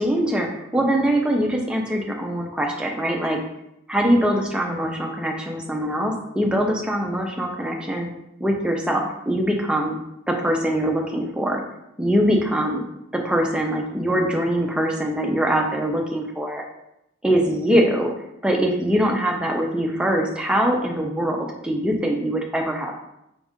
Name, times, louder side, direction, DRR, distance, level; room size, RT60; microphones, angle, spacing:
voice 1, 0.0-3.4 3.9-8.1 8.4-10.0 10.3-11.6 12.0-12.8 13.1-16.6 17.2-18.1 18.4-21.4 21.6-23.0, equal, 5° right, 0 dB, 0.4 m, -22 dB
5.2 x 2.4 x 3.5 m, 0.84 s
head